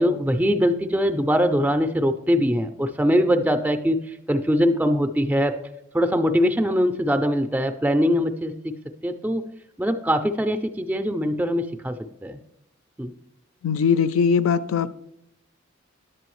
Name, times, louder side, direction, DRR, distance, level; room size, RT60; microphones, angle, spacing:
voice 1, 0.0-5.6 5.9-8.8 9.0-9.4 9.8-12.4 13.0-13.1, equal, 10° right, 0.4 m, -22 dB
voice 2, 13.6-14.9, left 6 dB, 80° left, 0.4 m, -20 dB
9.9 x 7.6 x 3.1 m
head